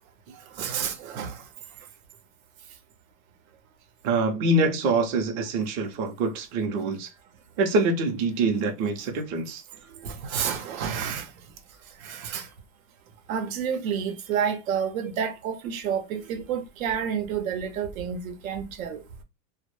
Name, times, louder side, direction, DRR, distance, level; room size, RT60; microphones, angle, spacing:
voice 1, 0.6-1.4 10.0-11.3 12.0-12.5 13.3-19.0, right 7 dB, 90° right, 0.7 m, -29 dB
voice 2, 4.0-7.1 7.6-9.6, right 2 dB, 30° right, 0.4 m, -25 dB
2.0 x 2.0 x 3.0 m
supercardioid pair, 150°, 40 cm